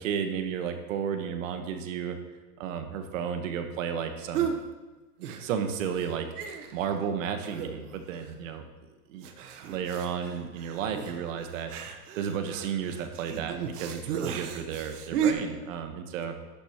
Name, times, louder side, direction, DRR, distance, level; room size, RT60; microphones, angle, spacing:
voice 1, 0.0-2.2 2.6-4.5 5.3-8.7 9.1-9.3 9.7-11.7 12.2-16.3, right 7 dB, 55° right, 7 dB, 1.3 m, -33 dB
sound 1, 4.3-4.6 5.2-5.7 6.0-6.1 6.4-6.9 7.4-7.9 8.2-8.3 9.2-15.3, right 8 dB, 75° right, 1.3 m, -34 dB
11.5 x 10.5 x 3.0 m, 1.2 s
supercardioid pair, 160°, 46 cm